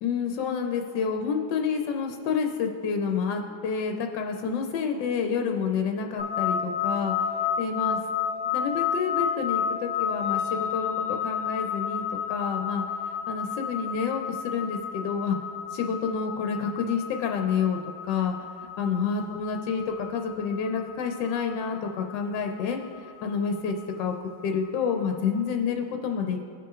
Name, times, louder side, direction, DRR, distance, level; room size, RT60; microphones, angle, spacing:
voice 1, 0.0-7.1 7.6-8.0 8.5-12.8 13.3-15.4 15.7-17.8 18.1-18.3 18.8-22.8 23.2-24.2 24.4-26.4, left 6 dB, 75° left, 4 dB, 1.3 m, -28 dB
sound 1, 6.2-25.3, left 8 dB, 10° right, 0.6 m, -32 dB
17.5 x 5.9 x 2.4 m, 2.4 s
omnidirectional pair, 2.0 m